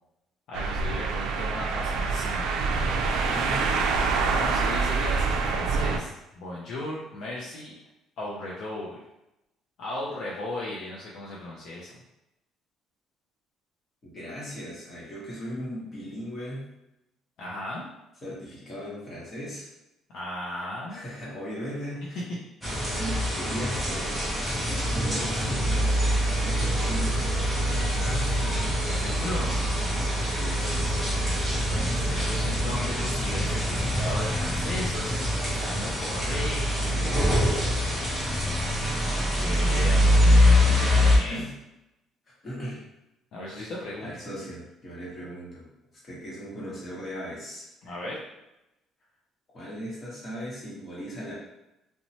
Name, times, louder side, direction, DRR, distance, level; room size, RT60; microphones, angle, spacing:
voice 1, 0.5-2.5 4.3-7.7 8.2-9.0 9.8-11.9 17.4-17.8 20.1-21.0 27.9-29.5 31.7-37.1 39.2-41.4 43.3-44.1 47.8-48.2, left 1 dB, 50° left, -5 dB, 0.5 m, -36 dB
sound 1, 0.5-6.0, right 4 dB, 90° right, 0.3 m, -26 dB
voice 2, 3.0-3.8 14.0-16.7 18.2-19.7 20.9-22.2 22.9-24.2 24.6-26.2 26.5-27.2 30.2-31.0 36.9-38.7 40.6-41.5 42.3-42.8 44.0-45.7 46.0-47.6 49.5-51.3, equal, 25° left, -6 dB, 0.9 m, -38 dB
sound 2, 22.6-41.2, equal, 5° left, 0.7 m, -24 dB
2.9 x 2.1 x 2.7 m, 0.91 s
cardioid pair, 175°, 0 cm